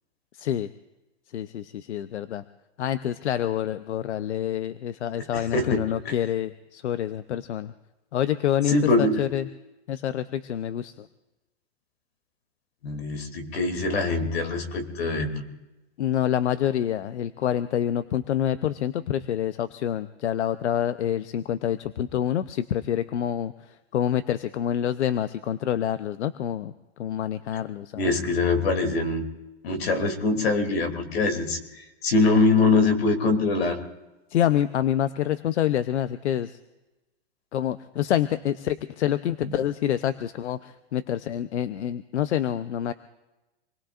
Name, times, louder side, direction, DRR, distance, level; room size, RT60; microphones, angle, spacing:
voice 1, 0.3-0.7 1.3-2.4 2.8-7.7 8.1-9.5 9.9-11.1 16.0-28.1 34.3-36.6 37.5-42.9, left 10 dB, 85° left, 12 dB, 0.8 m, -27 dB
voice 2, 5.1-6.1 8.7-9.2 12.8-15.4 28.0-29.3 29.6-33.8 39.4-39.5, left 3 dB, 65° left, 5 dB, 2.9 m, -23 dB
27.0 x 20.5 x 2.5 m, 1.0 s
hypercardioid pair, 170°, 34 cm